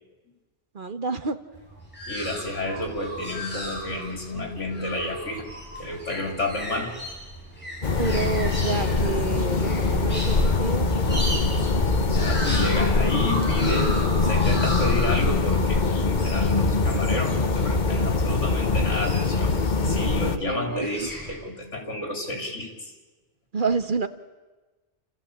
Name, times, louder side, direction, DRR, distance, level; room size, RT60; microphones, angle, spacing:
voice 1, 0.7-1.4 8.0-10.9 20.5-21.1 23.5-24.1, right 4 dB, 45° right, 10 dB, 1.1 m, -28 dB
sound 1, 1.5-19.7 20.6-21.3, equal, 10° left, 7.4 m, -36 dB
voice 2, 2.1-5.4 5.8-7.0 12.1-19.5 19.8-22.9, left 1 dB, 85° left, 3 dB, 4.0 m, -31 dB
sound 2, 7.8-20.4, left 3 dB, 40° left, 1.2 m, -23 dB
29.5 x 14.5 x 8.6 m, 1.2 s
omnidirectional pair, 1.2 m